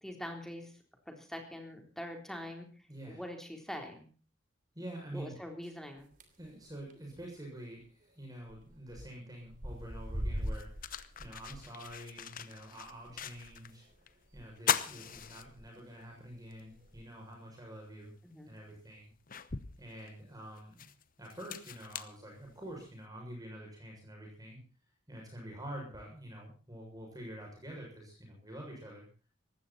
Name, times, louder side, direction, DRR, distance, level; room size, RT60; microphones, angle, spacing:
voice 1, 0.0-0.7 1.1-2.7 3.1-4.1 5.1-6.1 18.2-18.6, left 1 dB, ahead, 3 dB, 3.7 m, -43 dB
voice 2, 2.9-3.2 4.7-5.4 6.4-10.9 11.2-13.8 14.3-18.1 18.5-19.1 19.8-20.9 21.2-24.6 25.1-29.0, right 1 dB, 20° right, -1 dB, 6.7 m, -47 dB
sound 1, 6.0-6.5 6.8-7.1 7.4-7.5 7.6-7.7 8.5-9.1 9.3-14.4 14.8-14.9 15.1-15.7 16.3-17.0, equal, 45° right, 3.1 m, -42 dB
sound 2, 9.8-9.9 10.4-13.8 14.1-14.2 14.6-16.0 16.5-16.6 18.0-18.1 18.7-22.9, left 8 dB, 45° left, 1.0 m, -39 dB
19.0 x 15.5 x 4.3 m, 0.38 s
head